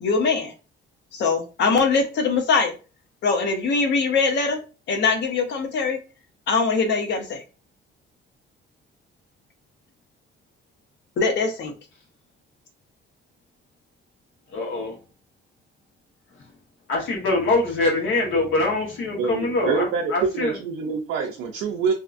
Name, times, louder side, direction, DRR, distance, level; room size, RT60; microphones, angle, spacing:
voice 1, 0.0-0.5 1.1-2.7 3.2-4.6 4.9-6.0 6.5-7.4 11.2-11.7, left 4 dB, 65° left, 5 dB, 0.7 m, -22 dB
voice 2, 14.5-15.0 16.9-20.6, left 2 dB, 85° left, -1 dB, 1.1 m, -24 dB
voice 3, 19.1-20.0 20.3-21.9, right 5 dB, 90° right, 1 dB, 0.5 m, -26 dB
2.7 x 2.4 x 2.4 m, 0.34 s
cardioid pair, 90°, 20 cm